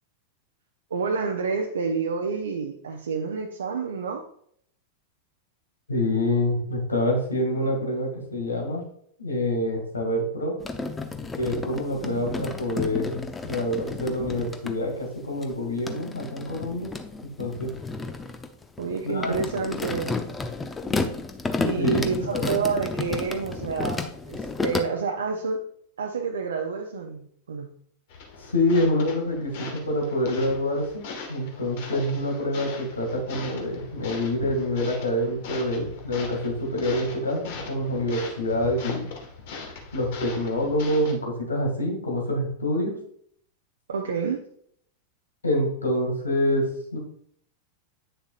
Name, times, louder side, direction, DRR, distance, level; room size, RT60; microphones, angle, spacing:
voice 1, 0.9-4.2 12.0-12.5 18.8-20.2 21.6-25.6 26.0-27.7 43.9-44.4, right 5 dB, 65° right, 1 dB, 0.7 m, -29 dB
voice 2, 5.9-8.8 9.2-10.5 11.4-16.9 17.4-17.7 19.0-19.4 21.8-22.5 28.4-37.4 37.7-39.1 39.9-43.0 45.4-46.7 46.9-47.0, left 1 dB, 75° left, 1 dB, 2.1 m, -26 dB
sound 1, 10.6-14.7 15.4-24.8, left 3 dB, 15° left, 0.7 m, -32 dB
sound 2, 28.1-41.1, left 4 dB, 50° left, 1.5 m, -39 dB
9.0 x 6.7 x 2.4 m, 0.65 s
figure-of-eight pair, 90°, 0 cm